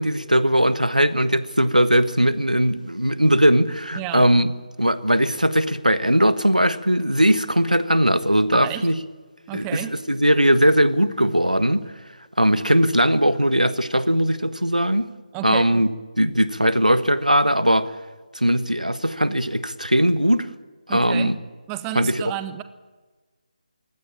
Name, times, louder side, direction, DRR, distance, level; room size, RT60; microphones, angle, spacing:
voice 1, 0.0-4.5 4.8-8.9 9.5-9.8 10.1-11.8 12.4-15.1 15.4-15.9 16.2-17.9 18.3-20.5 20.9-21.3 21.9-22.2, equal, 90° right, 1.3 m, -19 dB
voice 2, 4.0-4.3 8.5-8.9 9.5-9.9 15.3-15.7 20.9-21.3 21.7-22.6, right 14 dB, 10° right, 0.6 m, -31 dB
22.5 x 17.0 x 8.8 m
figure-of-eight pair, 150°, 4 cm